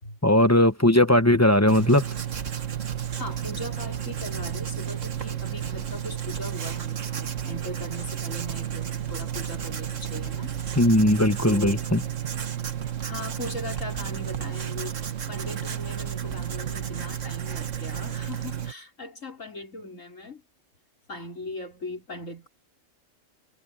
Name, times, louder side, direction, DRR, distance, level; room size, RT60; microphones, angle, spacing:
voice 1, 0.2-2.1 10.8-12.0, left 1 dB, 15° left, 0.9 m, -19 dB
Writing, 1.7-18.7, right 9 dB, 70° right, 1.8 m, -32 dB
voice 2, 3.2-10.6 11.5-11.9 13.0-15.0 15.3-20.4 21.1-22.5, left 2 dB, 70° left, 5.1 m, -39 dB
omnidirectional pair, 1.4 m